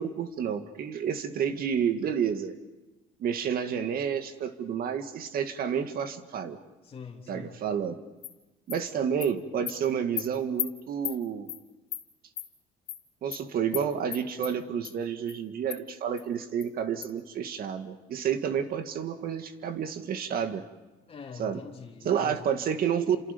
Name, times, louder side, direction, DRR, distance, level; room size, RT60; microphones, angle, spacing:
voice 1, 0.0-2.5 3.2-6.6 7.3-7.9 8.7-11.5 13.2-20.7 21.4-21.6 22.0-23.3, right 7 dB, 60° right, 8 dB, 2.1 m, -30 dB
voice 2, 6.8-7.6 21.1-22.6, left 5 dB, 35° left, 2 dB, 3.1 m, -44 dB
Animal, 8.2-8.3 8.7-8.8 9.2-9.3 9.7-9.8 10.2-10.3 10.6-10.7 11.0-11.2 11.5-11.6 11.9-12.0 12.4-12.5 12.9-13.0 13.3-13.4 13.7-13.8 14.1-14.5 14.8-14.9 15.3-15.4 15.7-15.8 16.2-16.3 16.6-16.7 17.0-17.1, left 11 dB, 65° left, 2.5 m, -34 dB
30.0 x 27.5 x 5.4 m, 1.1 s
cardioid pair, 110°, 17 cm